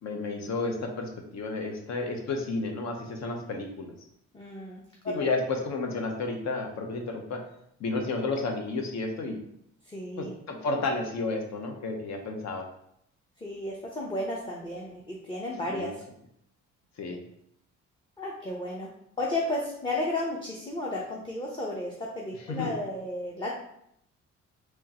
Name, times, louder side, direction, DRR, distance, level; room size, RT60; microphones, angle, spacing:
voice 1, 0.0-3.9 5.0-7.4 7.8-9.4 10.2-12.7 15.7-15.9 17.0-17.2 22.5-22.7, left 3 dB, 65° left, 3 dB, 0.8 m, -31 dB
voice 2, 4.3-4.8 5.2-5.3 9.9-10.3 13.4-15.9 18.2-18.9 19.2-23.5, left 1 dB, 15° left, -3 dB, 0.7 m, -33 dB
3.5 x 3.1 x 2.8 m, 0.73 s
cardioid pair, 90°, 30 cm